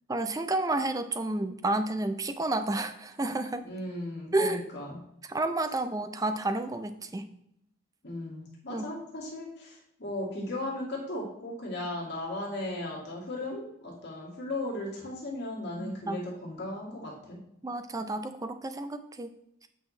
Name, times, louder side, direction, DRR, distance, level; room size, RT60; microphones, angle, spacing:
voice 1, 0.1-3.6 4.3-4.6 5.3-7.3 8.7-8.9 15.8-16.2 17.6-19.3, right 2 dB, 15° right, 9 dB, 0.4 m, -30 dB
voice 2, 3.6-5.0 8.0-17.4, left 1 dB, 50° left, -4 dB, 2.2 m, -36 dB
8.8 x 5.6 x 3.2 m, 0.77 s
head